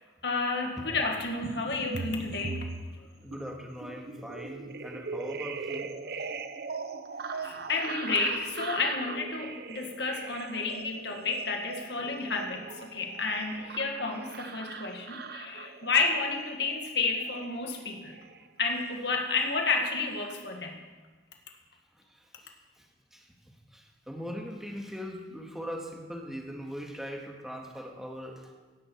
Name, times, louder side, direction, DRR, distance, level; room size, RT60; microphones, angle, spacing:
voice 1, 0.2-2.7 7.4-18.2 18.6-20.8, left 4 dB, 65° left, 2 dB, 1.9 m, -31 dB
sound 1, 1.4-19.2 19.5-20.3, right 4 dB, 60° right, 0.8 m, -40 dB
voice 2, 3.0-6.3 21.9-28.5, equal, ahead, 0 dB, 1.8 m, -41 dB
17.0 x 12.5 x 4.7 m, 1.3 s
head